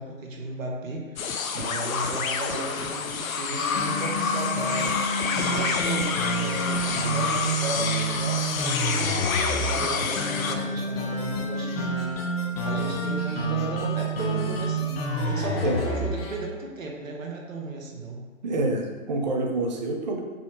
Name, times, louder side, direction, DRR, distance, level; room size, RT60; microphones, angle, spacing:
voice 1, 0.0-4.9 5.5-12.3 12.6-15.0 15.2-18.2, right 2 dB, 75° right, 0 dB, 0.9 m, -35 dB
sound 1, 1.2-10.6, left 5 dB, 85° left, 0.5 m, -28 dB
sound 2, 3.6-16.4, right 1 dB, 45° left, 0.7 m, -29 dB
voice 2, 18.4-20.2, right 2 dB, 35° right, 2 dB, 0.4 m, -27 dB
5.5 x 2.0 x 2.9 m, 1.4 s
figure-of-eight pair, 135°, 40 cm